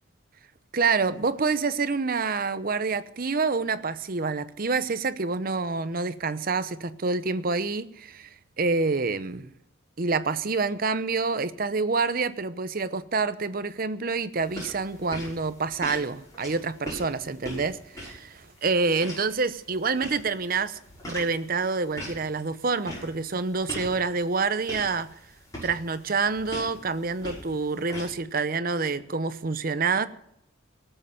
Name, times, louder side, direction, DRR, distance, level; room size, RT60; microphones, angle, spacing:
voice 1, 0.7-8.3 8.6-9.5 10.0-20.8 21.0-25.1 25.6-30.1, right 4 dB, 45° right, 0.8 m, -27 dB
sound 1, 14.4-28.1, equal, 20° left, 6.2 m, -42 dB
18.0 x 7.8 x 6.7 m
head